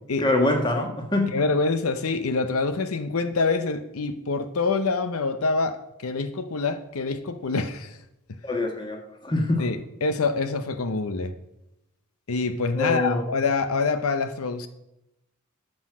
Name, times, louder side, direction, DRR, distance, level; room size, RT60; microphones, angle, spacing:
voice 1, 0.2-1.3 8.4-9.7 12.8-13.3, left 2 dB, 20° left, 1.6 m, -24 dB
voice 2, 1.3-8.0 9.6-11.3 12.3-14.7, left 3 dB, 85° left, 0.7 m, -26 dB
11.5 x 6.3 x 6.1 m
head